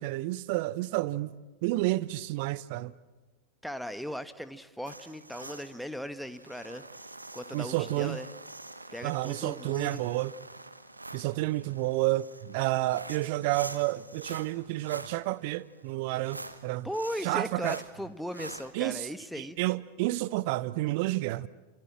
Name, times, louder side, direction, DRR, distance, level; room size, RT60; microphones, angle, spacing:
voice 1, 0.0-1.3 1.6-2.9 7.5-8.2 9.0-10.3 11.1-16.9 17.2-17.8 18.7-19.1 19.4-21.5, right 18 dB, 50° right, 0.9 m, -30 dB
voice 2, 3.6-6.8 7.3-8.3 8.9-10.0 16.8-19.6, equal, ahead, 1.5 m, -38 dB
sound 1, 4.9-18.7, right 2 dB, 85° right, 1.3 m, -46 dB
28.5 x 27.5 x 7.5 m
figure-of-eight pair, 90°, 0 cm